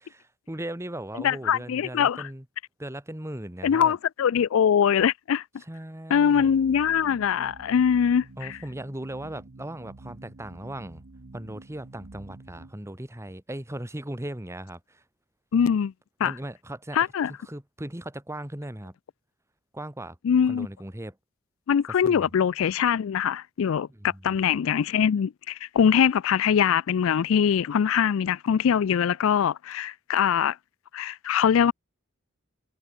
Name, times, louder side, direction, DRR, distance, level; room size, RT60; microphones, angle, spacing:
voice 1, 0.2-2.4 2.8-4.0 5.7-6.6 8.4-11.0 11.3-15.0 16.2-17.0 17.3-18.9 19.7-20.2 20.4-21.2 22.0-22.3 23.9-24.4, right 1 dB, 15° right, 1.5 m, -38 dB
voice 2, 1.2-2.3 3.6-5.4 6.1-8.6 15.5-15.9 16.2-16.3 16.9-17.3 20.2-20.7 21.7-30.6 30.9-31.7, left 8 dB, 70° left, 0.4 m, -23 dB
sound 1, 6.3-12.7, right 2 dB, 55° right, 0.9 m, -48 dB
head